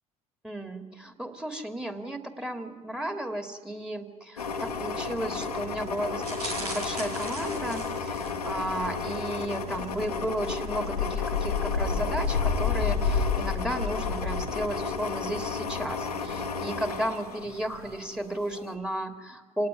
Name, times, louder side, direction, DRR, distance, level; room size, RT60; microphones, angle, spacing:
voice 1, 0.4-19.7, right 1 dB, 5° right, 7 dB, 2.9 m, -34 dB
sound 1, 4.4-18.1 18.5-18.6, left 5 dB, 90° left, 1.5 m, -31 dB
sound 2, 6.2-8.5 9.0-9.3 9.6-9.7, right 1 dB, 90° right, 3.6 m, -38 dB
27.0 x 18.0 x 9.8 m, 1.4 s
figure-of-eight pair, 55°, 19 cm